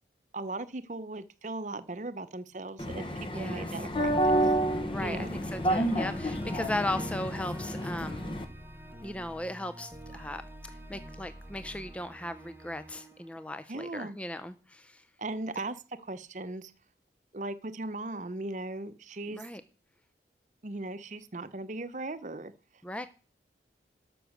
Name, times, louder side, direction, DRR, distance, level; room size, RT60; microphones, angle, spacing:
voice 1, 0.3-3.1 3.3-4.1 4.4-4.5 5.0-5.4 13.7-14.2 15.2-15.8 16.0-16.7 17.3-19.4 20.6-22.5, right 2 dB, 45° right, 13 dB, 0.8 m, -38 dB
sound 1, 2.8-8.4, right 1 dB, 30° left, 1.0 m, -30 dB
voice 2, 3.3-3.7 4.9-8.2 9.0-15.0 19.3-19.6 22.8-23.1, left 1 dB, 5° left, 11 dB, 0.5 m, -37 dB
sound 2, 3.9-14.1, equal, 10° right, 0.9 m, -47 dB
12.5 x 6.2 x 6.5 m, 0.36 s
head